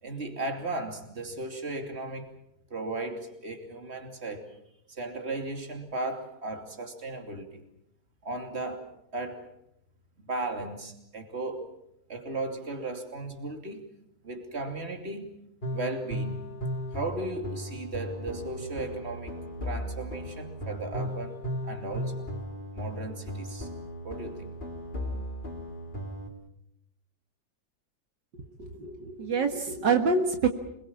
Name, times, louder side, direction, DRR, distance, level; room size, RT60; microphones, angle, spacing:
voice 1, 0.0-2.3 2.7-4.6 4.9-7.6 8.2-8.9 9.1-9.5 10.2-11.7 12.1-13.8 14.2-15.3 15.7-16.4 16.9-19.4 19.6-22.3 22.7-23.7 24.0-24.5, right 2 dB, 35° right, 5 dB, 3.1 m, -36 dB
sound 1, 15.6-26.3, equal, 25° left, 3.5 m, -36 dB
voice 2, 28.6-30.5, right 4 dB, 75° right, 5 dB, 2.4 m, -26 dB
26.5 x 22.0 x 7.3 m, 0.78 s
omnidirectional pair, 1.9 m